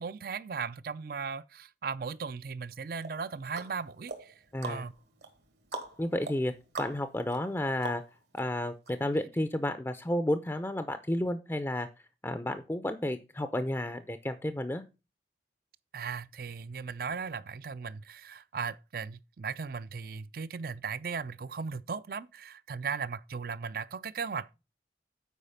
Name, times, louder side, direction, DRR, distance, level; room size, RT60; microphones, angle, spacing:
voice 1, 0.0-4.3 4.6-4.9 15.9-24.6, right 5 dB, 55° right, 0.4 m, -37 dB
sound 1, 3.0-8.4 8.9-9.0, right 2 dB, 75° right, 1.8 m, -43 dB
voice 2, 4.5-4.8 6.0-6.5 6.8-8.0 8.3-11.9 12.2-14.8, left 1 dB, 15° left, 0.5 m, -31 dB
8.3 x 4.9 x 5.6 m
head